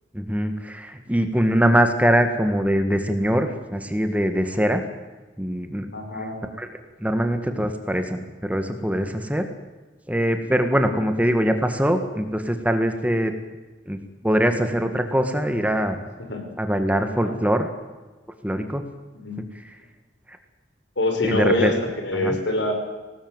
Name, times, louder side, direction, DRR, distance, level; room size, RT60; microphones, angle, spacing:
voice 1, 0.1-4.8 5.4-5.9 6.6-6.7 7.0-9.5 10.1-13.3 13.9-14.0 14.2-16.0 16.6-17.7 18.4-18.8 20.3-20.4 21.2-21.7 22.2-22.4, equal, 10° right, 7 dB, 1.7 m, -22 dB
voice 2, 5.9-6.4 16.2-16.5 17.2-17.4 19.2-19.4 21.0-22.7, left 1 dB, 75° left, 4 dB, 5.8 m, -25 dB
25.0 x 19.0 x 8.0 m, 1.2 s
head